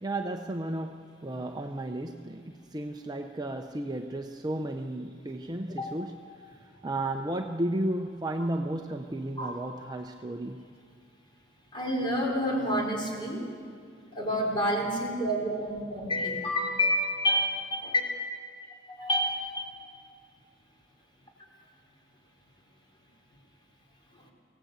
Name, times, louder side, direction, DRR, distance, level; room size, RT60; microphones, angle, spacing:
voice 1, 0.0-6.2 6.8-10.6, right 1 dB, 20° right, 5 dB, 0.6 m, -33 dB
voice 2, 11.7-13.4 14.1-18.0 18.9-19.7, equal, 25° left, -1 dB, 4.1 m, -28 dB
24.0 x 17.5 x 8.1 m, 2.2 s
head